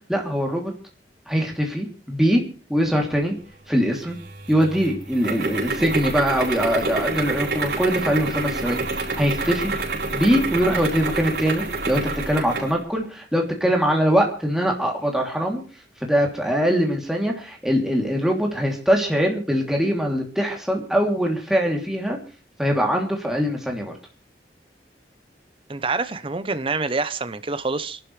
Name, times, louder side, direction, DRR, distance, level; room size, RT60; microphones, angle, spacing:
voice 1, 0.1-0.7 1.3-2.4 2.7-3.3 3.7-4.2 4.5-9.7 10.1-15.6 16.0-22.2 22.6-23.9, equal, 5° right, 2.9 m, -22 dB
sound 1, 4.0-12.8, right 3 dB, 75° right, 4.5 m, -28 dB
voice 2, 25.7-28.0, right 3 dB, 30° right, 0.8 m, -26 dB
28.0 x 11.5 x 3.3 m
head